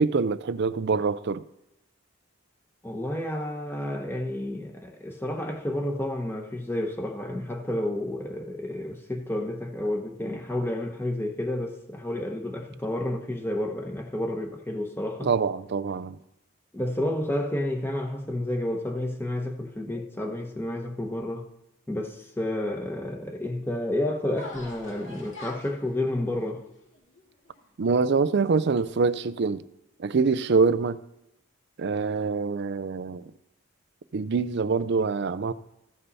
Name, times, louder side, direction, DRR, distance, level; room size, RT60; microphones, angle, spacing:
voice 1, 0.0-1.4 15.2-16.2 27.8-29.6 30.0-31.0 31.8-33.2 34.1-35.5, right 4 dB, 55° right, 0.4 m, -25 dB
voice 2, 2.8-15.3 16.7-21.5 21.9-26.6, left 1 dB, 10° left, 1.0 m, -30 dB
sound 1, 24.3-27.9 28.4-29.2, left 1 dB, 60° left, 2.2 m, -45 dB
14.5 x 5.4 x 4.1 m
head